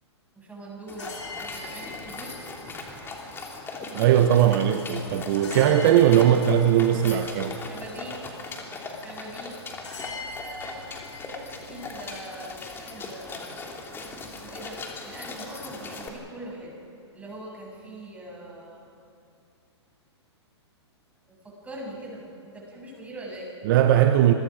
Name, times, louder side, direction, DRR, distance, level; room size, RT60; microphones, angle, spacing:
voice 1, 0.4-2.4 7.7-8.3 9.0-9.6 10.4-10.9 11.7-14.0 14.3-16.7 17.1-18.9 21.3-23.5, right 1 dB, 10° right, -3 dB, 7.8 m, -42 dB
sound 1, 0.9-16.1, left 3 dB, 15° left, 3.2 m, -39 dB
sound 2, 1.0-12.0, left 3 dB, 85° left, 4.6 m, -44 dB
voice 2, 3.9-7.6 23.6-24.3, right 10 dB, 45° right, 7 dB, 1.2 m, -19 dB
28.0 x 23.0 x 5.1 m, 2.6 s
hypercardioid pair, 125°, 15 cm